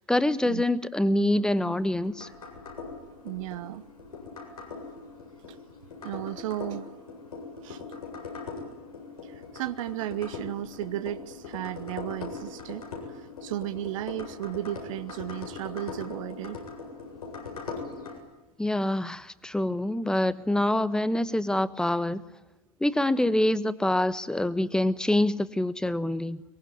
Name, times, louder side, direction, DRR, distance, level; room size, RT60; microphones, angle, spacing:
voice 1, 0.1-2.3 18.6-22.2 22.8-26.4, left 1 dB, 5° left, 15 dB, 1.2 m, -25 dB
sound 1, 1.4-18.2, left 4 dB, 80° left, 7.8 m, -41 dB
voice 2, 3.2-3.9 5.5-5.6 6.0-6.9 7.6-7.8 9.2-16.6, right 14 dB, 60° right, 10 dB, 1.0 m, -34 dB
23.5 x 22.5 x 9.6 m, 1.0 s
hypercardioid pair, 90°, 19 cm